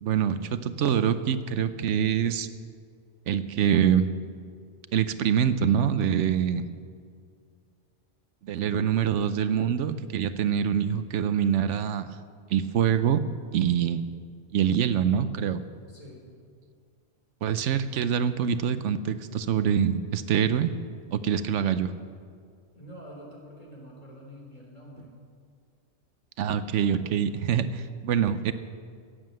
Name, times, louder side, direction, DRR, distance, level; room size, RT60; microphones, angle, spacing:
voice 1, 0.0-2.5 3.3-4.1 4.9-6.7 8.4-12.2 12.5-13.2 13.5-14.0 14.5-15.6 17.4-20.7 21.1-21.9 26.4-28.5, right 8 dB, 80° right, 12 dB, 1.0 m, -25 dB
voice 2, 15.9-16.3 17.8-18.0 22.7-25.2 26.8-27.2, equal, 30° left, -3 dB, 3.9 m, -47 dB
15.0 x 9.3 x 7.6 m, 2.1 s
omnidirectional pair, 1.2 m